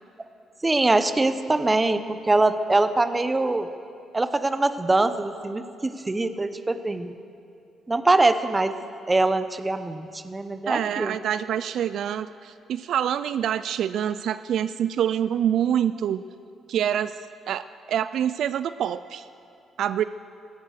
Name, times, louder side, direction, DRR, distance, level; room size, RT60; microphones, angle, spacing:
voice 1, 0.6-3.7 4.1-7.1 7.9-8.7 9.1-11.2, right 2 dB, 20° right, 11 dB, 0.8 m, -23 dB
voice 2, 10.7-16.2 16.7-17.2 17.5-17.6 17.9-19.3 19.8-20.0, right 9 dB, 70° right, 13 dB, 0.3 m, -26 dB
17.0 x 12.5 x 6.5 m, 2.7 s
cardioid pair, 90°, 0 cm